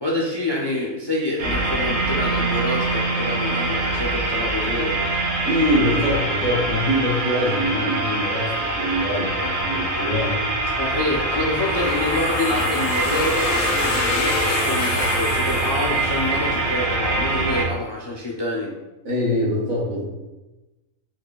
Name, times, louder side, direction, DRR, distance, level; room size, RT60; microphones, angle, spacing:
voice 1, 0.0-5.0 10.8-18.7, left 1 dB, 40° left, -2 dB, 0.3 m, -27 dB
sound 1, 1.4-17.6, right 2 dB, 55° right, 1.4 m, -24 dB
voice 2, 5.5-10.4 19.1-20.0, equal, 90° right, -4 dB, 1.8 m, -23 dB
sound 2, 11.5-16.4, left 4 dB, 90° left, 1.0 m, -27 dB
4.6 x 4.1 x 2.3 m, 1.1 s
omnidirectional pair, 1.4 m